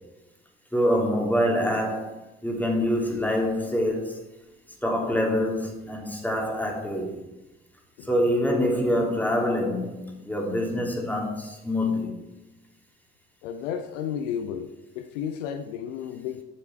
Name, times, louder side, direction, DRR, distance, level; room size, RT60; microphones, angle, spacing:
voice 1, 0.7-4.2 4.8-7.3 8.0-12.1, equal, 5° left, 3.0 m, -25 dB
voice 2, 13.4-16.4, left 8 dB, 75° left, 0.7 m, -33 dB
12.5 x 7.1 x 4.3 m
figure-of-eight pair, 40°, 38 cm